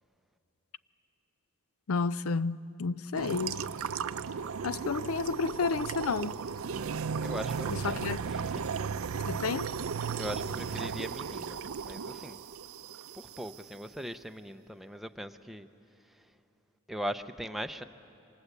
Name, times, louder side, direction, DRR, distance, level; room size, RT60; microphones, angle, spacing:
voice 1, 1.9-3.6 4.6-6.4 7.8-8.2 9.3-9.7, left 4 dB, 80° left, 0.5 m, -31 dB
sound 1, 3.1-13.6, right 6 dB, 75° right, 0.5 m, -35 dB
voice 2, 7.2-8.0 8.3-8.7 10.2-11.6 11.8-12.4 13.1-15.7 16.9-17.8, equal, ahead, 0.6 m, -39 dB
27.5 x 25.0 x 8.2 m
head